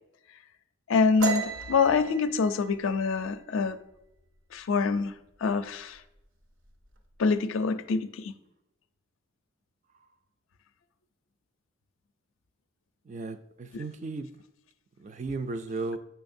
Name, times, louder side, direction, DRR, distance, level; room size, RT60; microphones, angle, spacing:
voice 1, 0.9-3.8 4.5-5.1 5.4-6.0 7.2-8.3 13.7-13.8, left 4 dB, 75° left, 0.4 m, -25 dB
sound 1, 1.2-4.6 5.0-5.3 5.7-6.2 6.5-7.2, right 4 dB, 65° right, 0.7 m, -35 dB
voice 2, 13.1-14.3 15.0-16.0, right 3 dB, 35° right, 0.3 m, -35 dB
7.1 x 5.6 x 2.6 m
head